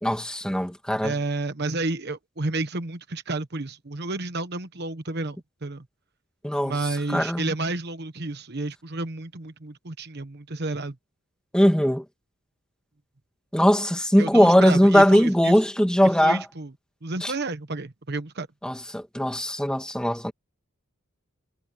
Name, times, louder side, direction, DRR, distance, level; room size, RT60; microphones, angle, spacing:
voice 1, 0.0-1.1 6.4-6.8 7.1-7.5 11.5-12.0 13.5-16.4 17.2-17.3 18.6-20.3, equal, 5° left, 2.0 m, -20 dB
voice 2, 1.0-5.8 6.6-10.9 14.2-15.6 16.2-16.7 17.0-18.5, right 2 dB, 50° right, 1.2 m, -31 dB
head